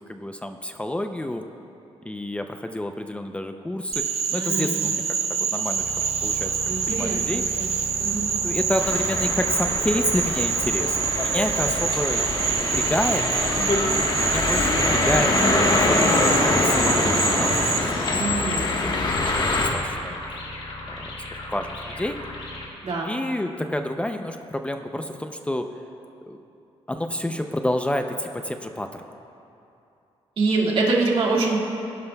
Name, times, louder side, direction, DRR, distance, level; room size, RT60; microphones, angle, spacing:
voice 1, 0.1-1.5 2.0-4.0 4.3-7.4 8.2-11.0 11.2-13.2 14.2-19.2 19.5-20.2 20.9-22.2 23.0-25.7 26.3-26.4 26.9-29.0, left 1 dB, 10° left, 6 dB, 0.5 m, -29 dB
Frog, 3.9-17.8, right 6 dB, 75° right, 0.8 m, -26 dB
voice 2, 4.3-4.9 6.7-7.7 8.0-8.3 18.1-18.7 22.8-23.1 30.4-31.6, right 3 dB, 60° right, -3 dB, 2.0 m, -25 dB
sound 1, 5.8-22.7, left 2 dB, 65° left, 2.6 m, -38 dB
sound 2, 8.8-19.7, left 2 dB, 45° left, 1.4 m, -24 dB
21.0 x 11.0 x 2.3 m, 2.8 s
cardioid pair, 105°, 11 cm